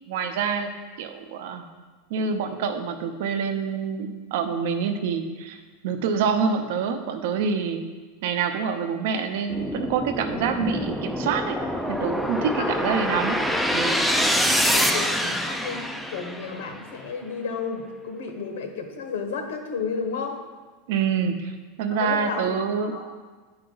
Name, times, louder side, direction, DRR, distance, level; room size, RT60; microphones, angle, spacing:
voice 1, 0.1-0.7 1.0-1.7 2.1-7.8 8.2-11.6 11.9-13.4 13.7-14.0 20.9-21.5 21.8-22.9, right 6 dB, 60° right, 7 dB, 0.7 m, -26 dB
sound 1, 9.5-16.8, equal, ahead, 0.3 m, -25 dB
voice 2, 12.6-12.9 14.1-20.4 21.9-22.6 22.9-23.0, left 5 dB, 80° left, 4 dB, 1.2 m, -33 dB
10.0 x 4.8 x 3.9 m, 1.4 s
supercardioid pair, 175°, 0 cm